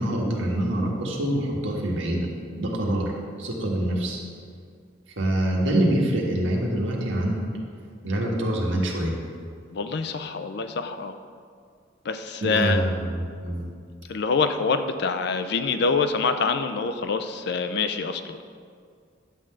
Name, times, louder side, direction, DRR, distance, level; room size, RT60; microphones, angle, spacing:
voice 1, 0.0-2.3 2.6-3.1 3.4-4.2 5.2-7.4 8.0-9.1 12.4-13.6, right 1 dB, 85° right, -1 dB, 1.5 m, -25 dB
voice 2, 9.7-11.2 12.1-12.8 14.1-18.4, left 4 dB, 60° left, 8 dB, 0.5 m, -25 dB
10.5 x 3.8 x 7.5 m, 2.1 s
head